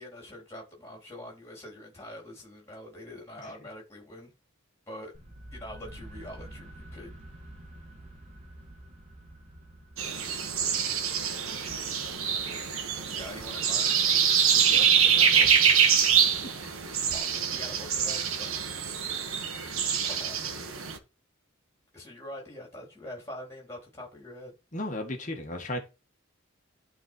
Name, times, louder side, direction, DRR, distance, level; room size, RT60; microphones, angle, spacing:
voice 1, 0.0-4.3 4.9-5.1 5.5-7.1 10.1-10.8 13.0-13.9 17.1-18.6 20.0-20.7 21.9-24.6, left 1 dB, 15° left, 3.6 m, -44 dB
sound 1, 5.1-17.0, right 1 dB, 30° right, 2.3 m, -50 dB
sound 2, 10.0-21.0, right 7 dB, 75° right, 1.5 m, -25 dB
voice 2, 14.4-15.7 16.6-16.7 24.7-25.8, left 1 dB, 35° left, 1.7 m, -37 dB
11.5 x 4.3 x 4.5 m
head